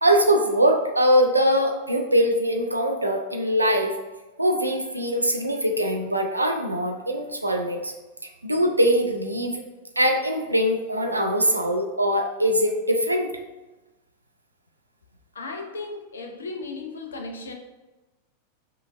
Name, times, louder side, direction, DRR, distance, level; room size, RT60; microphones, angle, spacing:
voice 1, 0.0-3.9 4.4-7.9 8.4-9.6 10.0-13.3, equal, 85° right, 3 dB, 0.4 m, -22 dB
voice 2, 15.3-17.5, left 3 dB, 70° left, 4 dB, 0.5 m, -35 dB
5.5 x 2.5 x 2.5 m, 1.1 s
figure-of-eight pair, 90°, 0 cm